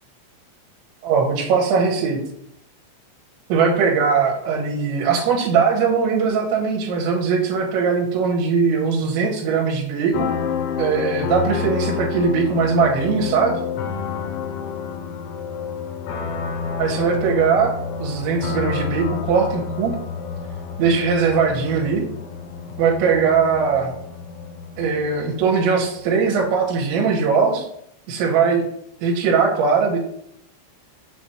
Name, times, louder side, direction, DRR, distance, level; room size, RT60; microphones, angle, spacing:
voice 1, 1.0-2.2 3.5-10.3 10.8-13.6 16.8-17.7 18.0-19.9 20.8-22.0 22.8-23.9 24.8-27.7 28.1-28.7 29.0-30.0, right 5 dB, 85° right, -2 dB, 3.3 m, -20 dB
sound 1, 10.1-26.6, left 6 dB, 85° left, 3.2 m, -29 dB
7.1 x 3.0 x 5.9 m, 0.74 s
omnidirectional pair, 5.3 m